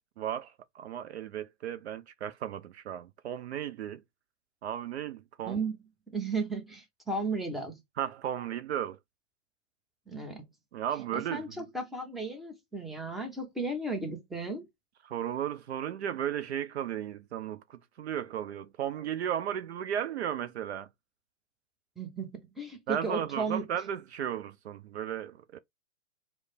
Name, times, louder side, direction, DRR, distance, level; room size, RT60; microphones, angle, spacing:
voice 1, 0.2-4.0 4.6-5.6 8.0-9.0 10.7-11.6 15.0-20.9 22.9-25.6, right 10 dB, 60° right, 0.5 m, -35 dB
voice 2, 5.4-5.8 6.1-7.8 10.1-10.4 11.1-14.7 22.0-23.7, right 3 dB, ahead, 0.7 m, -34 dB
3.2 x 2.1 x 4.0 m
hypercardioid pair, 120°, 38 cm